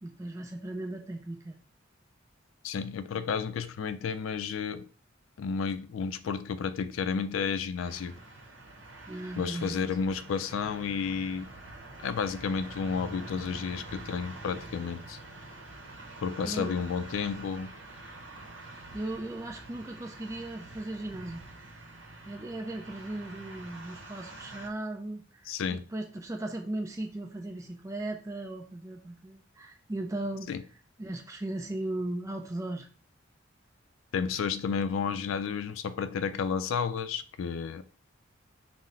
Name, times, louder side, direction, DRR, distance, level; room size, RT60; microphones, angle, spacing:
voice 1, 0.0-1.6 9.1-9.9 16.4-16.7 18.9-21.4 22.3-30.5 31.0-32.9, right 1 dB, 15° right, 0.4 m, -37 dB
voice 2, 2.6-4.9 5.4-8.1 9.4-11.5 12.0-15.2 16.2-17.7 25.5-25.8 30.5-30.6 34.1-37.8, left 6 dB, 90° left, 0.4 m, -31 dB
sound 1, 7.7-24.7, right 2 dB, 65° right, 0.8 m, -46 dB
3.8 x 2.1 x 4.1 m
head